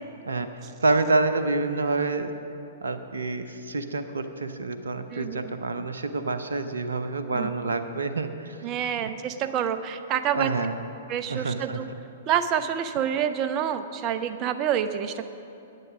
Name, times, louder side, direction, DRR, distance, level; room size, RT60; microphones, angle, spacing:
voice 1, 0.8-2.3 2.8-8.6 9.0-9.1 10.3-10.8 11.3-11.8, right 3 dB, 75° right, 9 dB, 0.7 m, -27 dB
voice 2, 5.1-5.5 7.4-7.5 8.6-10.5 11.1-11.9 12.3-15.3, right 9 dB, 35° right, 10 dB, 0.7 m, -27 dB
11.0 x 9.3 x 6.1 m, 2.8 s
figure-of-eight pair, 110°, 0 cm